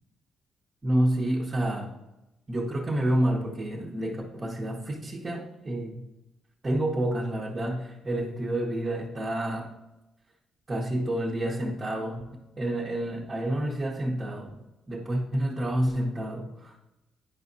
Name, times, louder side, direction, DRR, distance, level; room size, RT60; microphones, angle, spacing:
voice 1, 0.8-1.9 2.5-6.0 6.6-9.7 10.7-14.5 14.9-16.8, right 1 dB, 30° right, -4 dB, 1.1 m, -29 dB
9.5 x 5.0 x 2.7 m, 0.95 s
cardioid pair, 90°, 0 cm